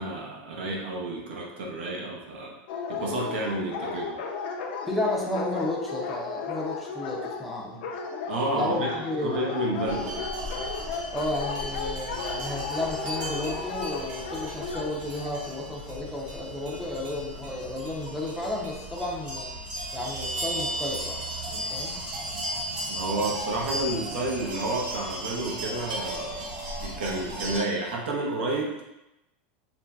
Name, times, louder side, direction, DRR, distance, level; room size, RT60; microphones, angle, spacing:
voice 1, 0.0-2.5 2.9-4.2 8.3-8.9 9.2-10.3 22.9-26.5 26.8-28.8, right 2 dB, 85° right, -1 dB, 0.7 m, -30 dB
Dog, 2.7-14.9, left 4 dB, 70° left, 0.4 m, -35 dB
voice 2, 4.8-7.8 8.5-9.5 11.1-19.5 19.9-21.2 21.5-22.0, left 1 dB, ahead, -4 dB, 0.4 m, -32 dB
sound 1, 9.9-27.6, right 1 dB, 50° right, 1.1 m, -35 dB
3.0 x 2.6 x 2.2 m, 0.94 s
supercardioid pair, 165°, 6 cm